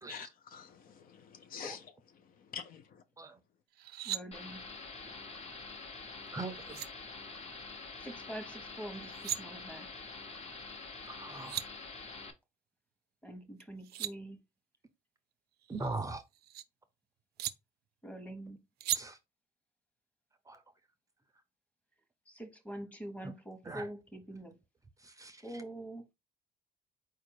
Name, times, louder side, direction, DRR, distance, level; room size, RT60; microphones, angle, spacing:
voice 1, 0.1-1.9 2.5-2.8, left 7 dB, 55° left, 0.6 m, -46 dB
sound 1, 3.7-4.2 6.3-6.4 6.7-6.9 8.9-9.4 11.1-11.2 11.3-11.7 13.6-14.1 15.6-16.6 17.4-17.5 18.8-19.0, right 13 dB, 70° right, 0.5 m, -37 dB
voice 2, 4.0-4.6 8.0-9.9 13.2-14.4 18.0-18.6 22.3-24.6 25.4-26.0, right 1 dB, 10° left, 1.1 m, -45 dB
sound 2, 4.3-12.3, left 3 dB, 40° left, 1.1 m, -46 dB
voice 3, 6.3-6.8 11.1-11.6 15.7-16.2 18.9-19.2 20.5-20.6 23.2-23.3 23.6-23.9 25.0-25.6, right 3 dB, 20° right, 0.5 m, -41 dB
4.5 x 2.5 x 4.6 m
cardioid pair, 110°, 17 cm